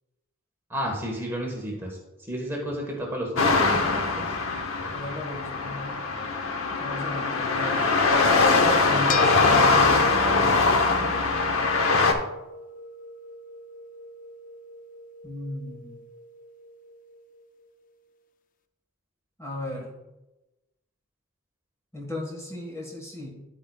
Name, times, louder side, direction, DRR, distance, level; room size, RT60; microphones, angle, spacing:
voice 1, 0.7-4.2, equal, 10° right, -1 dB, 1.3 m, -32 dB
sound 1, 3.4-12.1, left 3 dB, 75° left, 0.9 m, -22 dB
voice 2, 4.9-6.0 6.8-8.0 8.6-9.7 15.2-16.0 19.4-19.9 21.9-23.3, left 1 dB, 15° left, -2 dB, 1.6 m, -36 dB
sound 2, 9.1-17.7, left 2 dB, 40° left, 0.4 m, -38 dB
10.0 x 8.6 x 2.4 m, 1.0 s
head